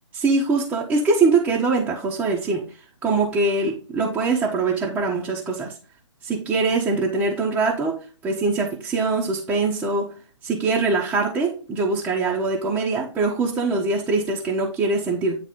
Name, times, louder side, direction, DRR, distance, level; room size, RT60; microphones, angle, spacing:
voice 1, 0.1-2.7 3.0-5.7 6.2-8.0 8.2-10.1 10.4-15.4, right 3 dB, 10° right, -3 dB, 1.0 m, -23 dB
9.3 x 3.2 x 5.1 m, 0.37 s
figure-of-eight pair, 140°, 16 cm